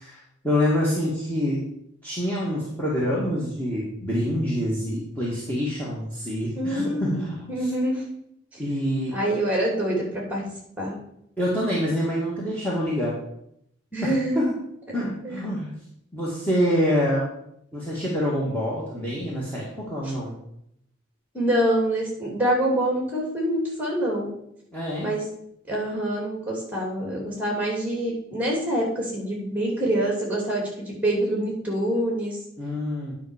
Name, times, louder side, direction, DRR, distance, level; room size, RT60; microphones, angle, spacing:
voice 1, 0.0-1.6 2.0-7.7 8.6-9.1 11.4-13.2 14.0-14.5 14.9-15.7 16.1-17.2 17.7-20.3 24.7-25.1 32.6-33.1, equal, 10° left, -7 dB, 1.7 m, -26 dB
voice 2, 6.5-7.1 7.5-8.0 9.1-10.4 10.8-11.0 13.9-14.4 15.2-15.4 20.0-20.1 21.3-24.3 25.0-25.2 25.7-32.4, right 1 dB, 5° right, -2 dB, 2.7 m, -25 dB
9.8 x 5.8 x 4.9 m, 0.74 s
head